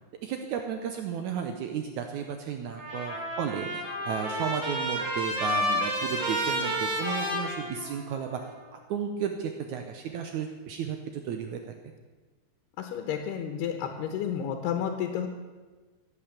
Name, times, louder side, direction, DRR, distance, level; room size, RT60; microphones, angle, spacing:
voice 1, 0.2-11.6, right 7 dB, 90° right, 5 dB, 1.6 m, -34 dB
Trumpet, 2.7-8.3, equal, 60° right, 6.0 m, -31 dB
voice 2, 12.8-15.3, left 8 dB, 80° left, 5 dB, 3.1 m, -31 dB
16.5 x 8.6 x 7.3 m, 1.3 s
omnidirectional pair, 4.6 m